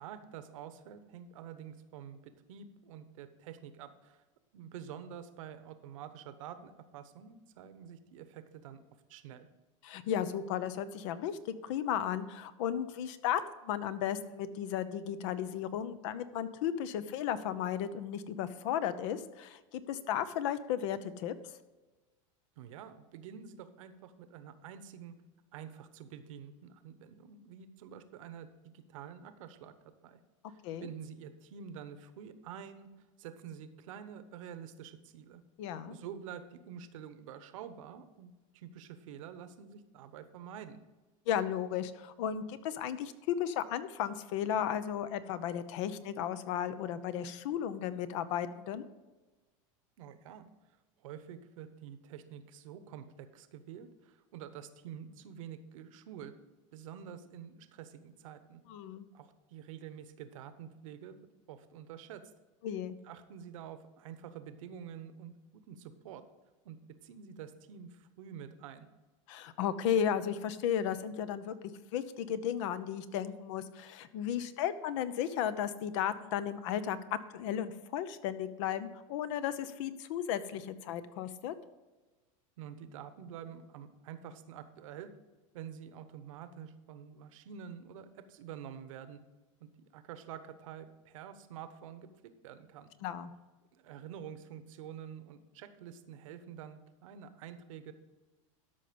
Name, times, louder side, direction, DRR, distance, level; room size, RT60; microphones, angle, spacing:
voice 1, 0.0-4.2 4.5-8.8 9.1-9.5 22.6-25.2 25.5-29.7 30.0-30.2 30.5-32.9 33.2-35.4 35.9-40.8 50.0-50.5 51.0-56.3 56.7-58.6 59.1-61.2 61.5-62.2 63.0-66.2 66.6-68.9 82.6-85.1 85.5-89.2 89.6-92.1 92.4-92.9 93.7-97.9, right 8 dB, 75° right, 11 dB, 1.0 m, -48 dB
voice 2, 9.8-21.3 30.6-30.9 35.6-36.0 41.3-48.8 58.7-59.0 62.6-63.0 69.3-71.5 71.9-77.0 77.3-81.5 93.0-93.3, left 9 dB, 65° left, 14 dB, 0.8 m, -34 dB
13.0 x 5.5 x 5.2 m, 1.2 s
supercardioid pair, 125°, 17 cm